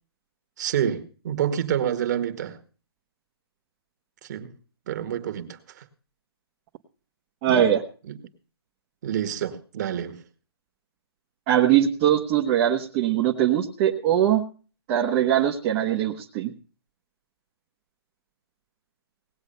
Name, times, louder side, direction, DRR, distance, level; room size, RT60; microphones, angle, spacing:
voice 1, 0.6-2.6 4.2-4.5 4.9-5.8 7.5-7.7 8.1-8.2 9.0-10.2, right 9 dB, 45° right, 8 dB, 1.8 m, -28 dB
voice 2, 7.4-7.8 11.5-14.4 14.9-16.5, right 10 dB, 30° right, -2 dB, 1.2 m, -21 dB
18.5 x 8.0 x 5.5 m, 0.39 s
hypercardioid pair, 155°, 13 cm